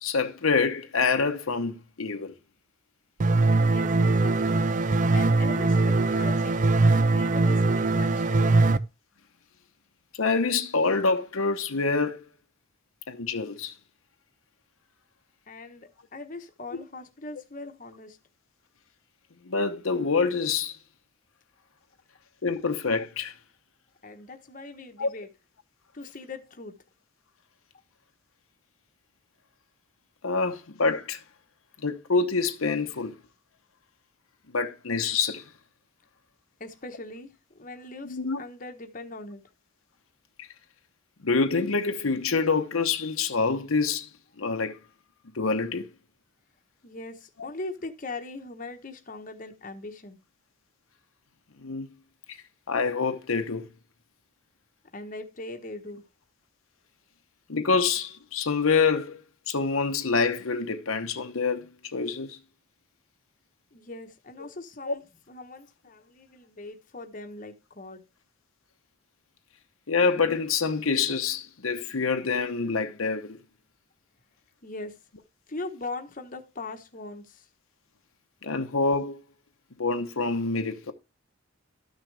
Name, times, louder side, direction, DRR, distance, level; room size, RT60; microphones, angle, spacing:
voice 1, 0.0-2.3 10.2-12.3 13.1-13.7 19.4-20.8 22.4-23.3 25.0-25.1 30.2-31.2 31.8-33.2 34.5-35.4 38.0-38.4 40.4-40.5 41.2-44.1 44.4-44.8 45.3-45.9 47.4-47.5 51.6-51.9 52.3-52.4 52.7-53.7 57.5-59.2 59.5-62.4 64.9-65.0 69.9-73.4 78.4-79.2 79.8-80.9, left 4 dB, 85° left, 0.9 m, -26 dB
sound 1, 3.2-8.8, right 3 dB, 35° right, 0.4 m, -22 dB
voice 2, 3.6-4.6 5.1-6.6 7.1-8.6 15.5-18.2 24.0-25.3 25.9-26.8 36.6-39.4 46.8-50.2 54.9-56.0 63.7-68.1 74.6-75.0 75.5-77.5, left 2 dB, 40° left, 1.0 m, -40 dB
13.0 x 6.4 x 3.3 m
head